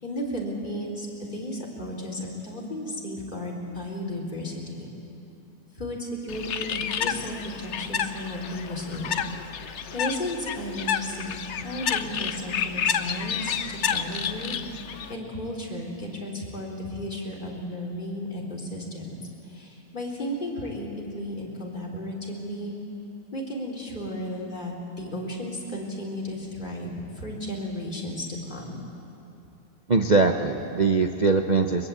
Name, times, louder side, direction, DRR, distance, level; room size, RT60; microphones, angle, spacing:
voice 1, 0.0-4.9 5.8-9.2 9.9-14.5 15.1-22.8 23.3-28.8, left 1 dB, 20° left, -3 dB, 3.8 m, -34 dB
Bird, 6.3-15.1, left 8 dB, 65° left, 0.7 m, -30 dB
voice 2, 29.9-31.9, right 3 dB, 85° right, 3 dB, 0.4 m, -22 dB
22.5 x 21.5 x 8.4 m, 2.8 s
omnidirectional pair, 2.2 m